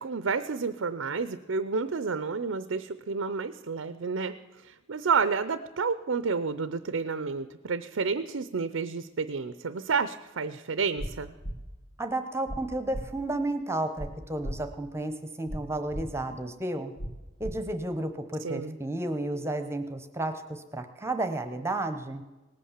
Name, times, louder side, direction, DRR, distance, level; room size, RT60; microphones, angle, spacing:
voice 1, 0.0-11.3 18.4-18.8, right 5 dB, 75° right, 13 dB, 0.6 m, -30 dB
sound 1, 11.0-11.1 11.4-11.6 12.5-12.6 12.9-13.0 14.0-14.1 14.4-14.6 15.5-15.6 15.9-16.0 17.0-17.1 17.4-17.5, equal, 55° left, 1.5 m, -35 dB
voice 2, 12.0-16.9 17.4-22.2, right 2 dB, 15° right, 8 dB, 0.9 m, -32 dB
19.0 x 8.5 x 7.4 m, 1.1 s
head